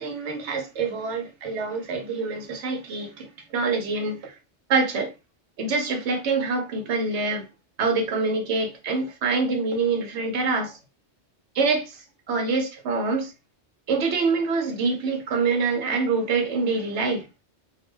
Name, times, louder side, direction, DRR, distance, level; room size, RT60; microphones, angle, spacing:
voice 1, 0.0-4.3 4.7-5.1 5.6-7.5 7.8-10.8 11.6-12.0 12.3-13.3 13.9-17.2, right 4 dB, 80° right, 1.0 m, -25 dB
2.5 x 2.1 x 3.2 m
omnidirectional pair, 1.2 m